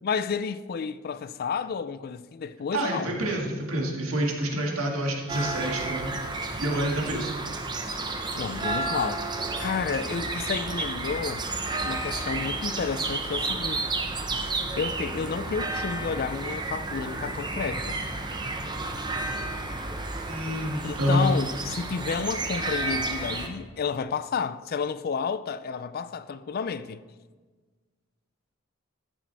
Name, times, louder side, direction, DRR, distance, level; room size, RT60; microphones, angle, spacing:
voice 1, 0.0-3.2 8.3-9.3 9.6-11.5 11.8-13.9 14.8-18.0 20.8-27.0, left 5 dB, 45° left, 0.4 m, -31 dB
voice 2, 2.7-7.4 20.3-21.3, right 1 dB, 90° right, 1.9 m, -28 dB
sound 1, 5.3-23.5, right 2 dB, 20° right, 0.7 m, -31 dB
13.5 x 7.5 x 3.4 m
head